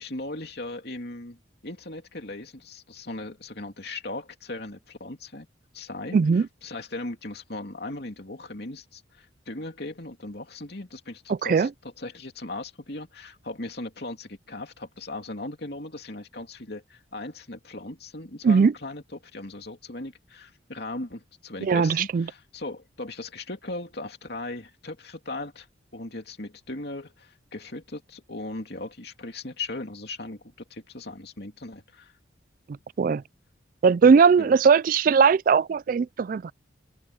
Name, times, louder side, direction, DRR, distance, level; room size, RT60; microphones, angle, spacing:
voice 1, 0.0-1.4 1.6-5.5 5.7-25.7 25.9-32.1 34.4-34.6, left 2 dB, 60° left, 2.9 m, -38 dB
voice 2, 6.1-6.5 11.3-11.7 18.4-18.7 21.6-22.3 33.0-33.2 33.8-36.5, right 5 dB, 45° right, 0.3 m, -19 dB
open air
head